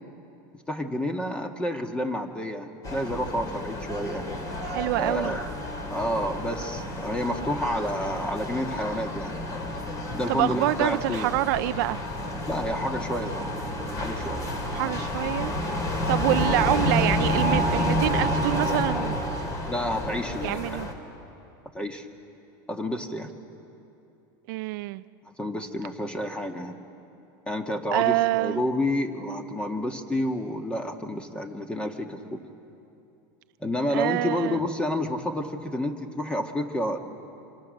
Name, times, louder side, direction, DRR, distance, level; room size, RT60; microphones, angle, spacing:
voice 1, 0.7-4.3 5.0-5.5 5.9-9.3 10.1-11.3 12.5-13.5 14.0-14.4 16.3-16.4 19.7-20.8 21.7-22.1 22.7-23.3 25.4-26.8 27.5-32.4 33.6-37.0, left 1 dB, 10° left, 5 dB, 1.7 m, -29 dB
sound 1, 2.8-20.9, left 1 dB, 30° left, 3.2 m, -29 dB
voice 2, 4.6-5.4 10.3-12.0 14.7-15.5 16.1-19.2 20.4-20.9 24.5-25.0 27.9-28.6 33.9-34.6, right 18 dB, 70° right, 14 dB, 0.5 m, -26 dB
26.0 x 26.0 x 6.6 m, 2.8 s
supercardioid pair, 135°, 11 cm